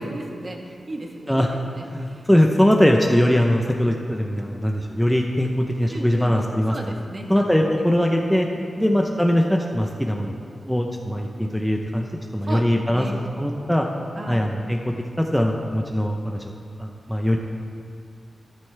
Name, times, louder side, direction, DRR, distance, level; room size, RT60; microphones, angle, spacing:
voice 1, 0.0-2.2 5.9-6.3 6.7-7.5 7.8-7.9 8.6-8.9 12.5-12.6 12.9-13.2 14.2-14.5, right 1 dB, 35° right, 2 dB, 1.2 m, -35 dB
voice 2, 1.9-6.8 7.3-8.5 8.8-10.3 10.6-13.1 13.4-13.9 14.3-16.4 16.8-17.4, equal, ahead, 1 dB, 0.7 m, -21 dB
13.0 x 13.0 x 3.3 m, 2.4 s
wide cardioid pair, 140°, 0 cm